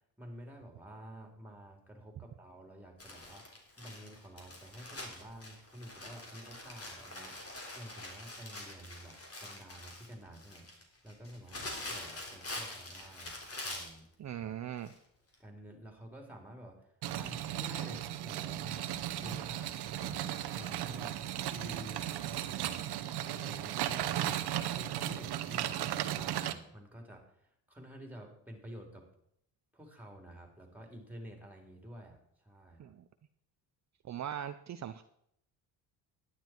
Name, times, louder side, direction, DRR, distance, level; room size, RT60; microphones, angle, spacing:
voice 1, 0.2-3.4 3.8-14.1 15.4-16.9 17.2-22.9 23.2-24.5 24.8-29.0 29.7-32.9, equal, 5° right, 3 dB, 3.7 m, -50 dB
Crumpling crinkling, 3.0-14.0 14.9-15.0 15.3-15.4, left 2 dB, 35° left, 3.7 m, -45 dB
voice 2, 14.2-14.9 32.8-33.0 34.0-35.0, right 10 dB, 40° right, 9 dB, 0.7 m, -40 dB
sound 1, 17.0-26.5, right 12 dB, 65° right, 1.1 m, -36 dB
12.0 x 10.0 x 4.6 m, 0.72 s
cardioid pair, 90°, 42 cm